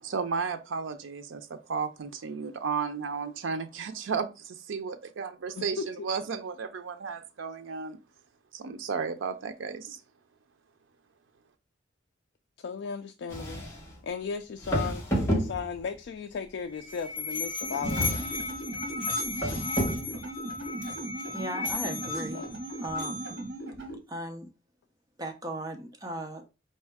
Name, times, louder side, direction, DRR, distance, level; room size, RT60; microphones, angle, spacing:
voice 1, 0.0-8.0 8.5-10.0, right 5 dB, 80° right, 0.5 m, -33 dB
voice 2, 5.6-6.1 12.6-13.6 14.0-18.2 22.3-22.5, left 6 dB, 65° left, 0.3 m, -36 dB
sound 1, 13.3-13.9 14.6-16.0 17.8-18.6 19.3-20.2, equal, 15° left, 1.1 m, -30 dB
Musical instrument, 16.6-23.5, left 3 dB, 50° left, 1.0 m, -35 dB
sound 2, 17.6-24.0, right 1 dB, 65° right, 1.3 m, -39 dB
voice 3, 21.3-22.4 22.8-23.2 24.1-24.5 25.2-26.4, right 1 dB, 20° right, 0.6 m, -36 dB
4.3 x 2.6 x 3.5 m
head